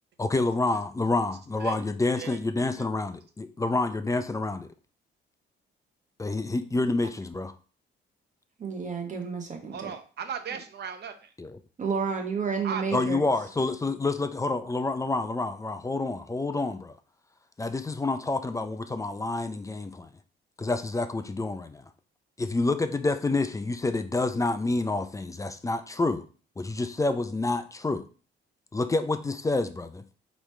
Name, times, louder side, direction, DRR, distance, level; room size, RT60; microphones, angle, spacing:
voice 1, 0.2-4.7 6.2-7.5 11.4-11.6 12.9-17.0 17.6-20.1 20.6-21.8 22.4-26.2 26.6-28.0 28.7-30.0, left 2 dB, 15° left, 9 dB, 0.4 m, -28 dB
voice 2, 8.6-9.9 11.8-13.2, right 5 dB, 40° right, 4 dB, 1.1 m, -30 dB
voice 3, 9.7-11.3 12.6-12.8, right 7 dB, 55° right, 8 dB, 0.7 m, -36 dB
5.0 x 3.1 x 3.2 m, 0.38 s
cardioid pair, 90°, 20 cm